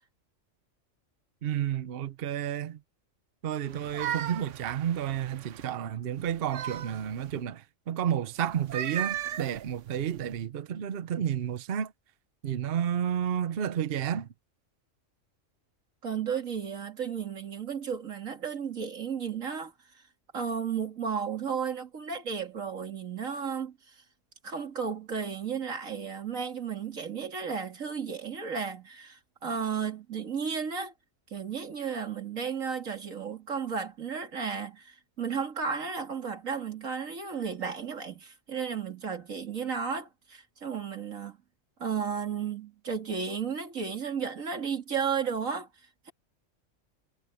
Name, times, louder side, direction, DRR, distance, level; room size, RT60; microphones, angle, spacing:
voice 1, 1.4-2.8 3.4-11.9 12.4-14.3, right 9 dB, 55° right, 0.9 m, -31 dB
sound 1, 3.7-5.7 6.2-7.4 8.5-10.4, right 10 dB, 70° right, 1.1 m, -37 dB
voice 2, 16.0-19.7 20.3-23.9 24.4-30.9 31.3-41.4 41.8-45.7, right 6 dB, 90° right, 2.8 m, -33 dB
omnidirectional pair, 1.3 m